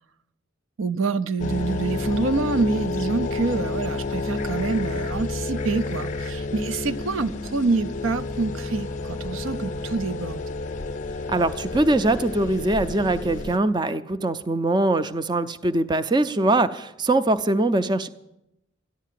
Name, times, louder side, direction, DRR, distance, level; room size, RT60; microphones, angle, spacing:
voice 1, 0.8-10.5, right 3 dB, 75° right, 0.5 m, -26 dB
sound 1, 1.4-13.6, left 3 dB, 35° left, 0.5 m, -30 dB
voice 2, 11.3-18.1, right 2 dB, 20° right, 0.4 m, -22 dB
13.5 x 11.0 x 7.5 m
head